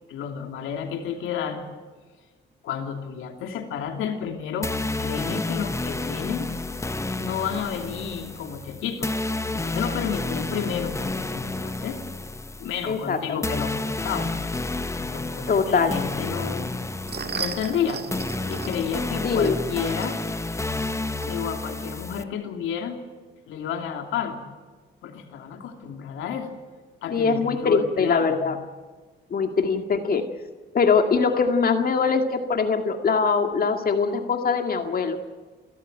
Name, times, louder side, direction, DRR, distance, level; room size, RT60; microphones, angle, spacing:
voice 1, 0.1-1.7 2.6-6.5 7.2-12.0 12.6-14.3 15.0-16.7 17.3-18.1 18.4-20.2 21.3-23.0 23.5-24.4 25.0-26.6 27.0-28.5, left 7 dB, 85° left, 4 dB, 3.0 m, -31 dB
sound 1, 4.6-22.2, left 2 dB, 15° left, 1.0 m, -30 dB
voice 2, 12.9-13.2 15.5-15.9 19.2-19.6 27.1-28.6 29.3-30.2 30.7-35.2, left 5 dB, 50° left, 5 dB, 2.1 m, -22 dB
sound 2, 16.7-21.9, right 7 dB, 55° right, 2.1 m, -37 dB
29.5 x 13.5 x 9.0 m, 1.4 s
cardioid pair, 90°, 20 cm